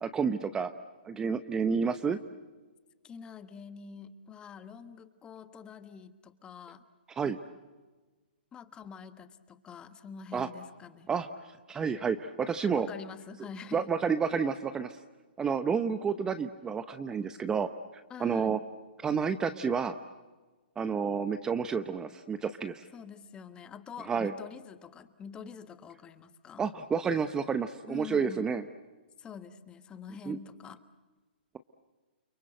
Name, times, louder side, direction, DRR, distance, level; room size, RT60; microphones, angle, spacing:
voice 1, 0.0-0.7 1.0-2.2 7.2-7.4 10.3-10.5 11.1-11.3 11.7-12.9 13.7-15.0 15.4-17.7 18.2-18.6 19.0-20.0 20.8-22.9 24.1-24.3 26.6-28.6 30.3-30.4, right 6 dB, 10° right, 10 dB, 0.9 m, -30 dB
voice 2, 3.0-6.8 8.5-11.1 12.7-13.9 18.1-18.6 22.9-26.6 27.9-28.5 29.2-30.8, left 6 dB, 15° left, 11 dB, 1.4 m, -46 dB
30.0 x 24.0 x 7.9 m, 1.3 s
hypercardioid pair, 140°, 6 cm